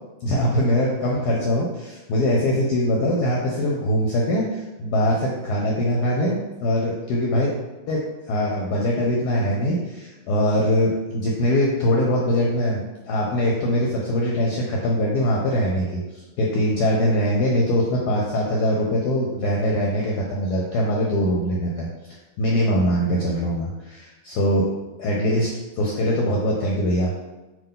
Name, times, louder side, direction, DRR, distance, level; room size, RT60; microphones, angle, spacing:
voice 1, 0.2-7.6 7.9-16.0 16.4-21.9 22.4-25.5 25.8-27.1, equal, 70° left, -2 dB, 1.1 m, -22 dB
3.7 x 2.7 x 3.7 m, 1.1 s
omnidirectional pair, 1.9 m